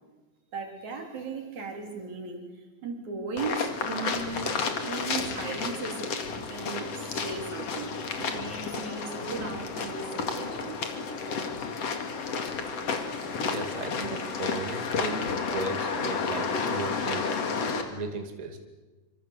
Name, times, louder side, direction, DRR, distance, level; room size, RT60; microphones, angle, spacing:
voice 1, 0.5-2.5 2.8-6.0 6.5-10.8, right 4 dB, 70° right, 2 dB, 5.0 m, -37 dB
sound 1, 3.4-17.8, left 5 dB, 55° left, 3.3 m, -31 dB
voice 2, 13.4-17.2 17.9-18.6, right 3 dB, 15° right, 4 dB, 2.1 m, -36 dB
26.0 x 25.5 x 8.4 m, 1.2 s
omnidirectional pair, 3.4 m